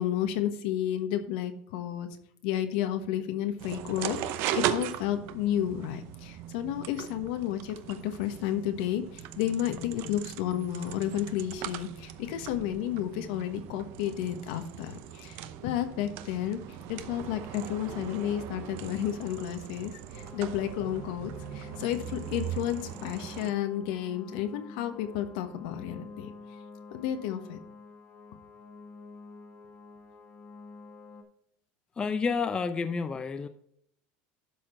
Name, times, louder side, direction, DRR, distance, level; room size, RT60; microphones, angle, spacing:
voice 1, 0.0-2.1 2.4-4.2 4.5-16.6 16.9-26.3 26.9-27.6, left 11 dB, 80° left, 8 dB, 1.2 m, -32 dB
sound 1, 3.6-23.5, right 11 dB, 60° right, 0.7 m, -39 dB
sound 2, 20.1-31.2, left 4 dB, 40° left, 1.7 m, -48 dB
voice 2, 32.0-33.5, left 5 dB, 20° left, 10 dB, 0.5 m, -29 dB
12.0 x 4.3 x 4.3 m, 0.69 s
supercardioid pair, 140°, 5 cm